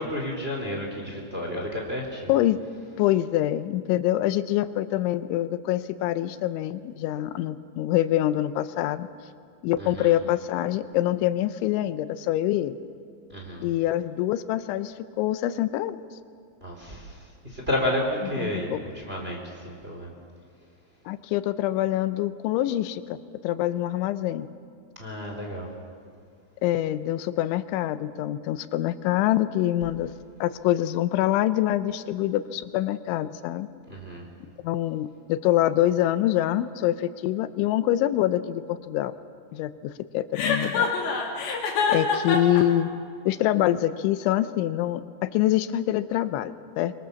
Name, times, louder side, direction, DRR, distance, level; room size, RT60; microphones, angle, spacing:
voice 1, 0.0-2.3 9.8-10.2 13.3-13.7 16.6-17.2 17.4-20.1 25.0-25.7 33.9-34.3, left 1 dB, 15° right, 1 dB, 2.9 m, -31 dB
voice 2, 3.0-9.1 9.6-12.8 13.6-16.0 18.4-18.8 21.1-23.2 23.4-24.5 26.6-30.1 30.4-33.7 34.6-39.1 39.5-40.9 41.9-42.9 43.3-46.9, left 13 dB, 85° left, 12 dB, 3.2 m, -25 dB
Chuckle chortle, 40.4-42.6, left 5 dB, 70° left, 5.1 m, -25 dB
25.5 x 24.0 x 7.0 m, 2.2 s
omnidirectional pair, 5.3 m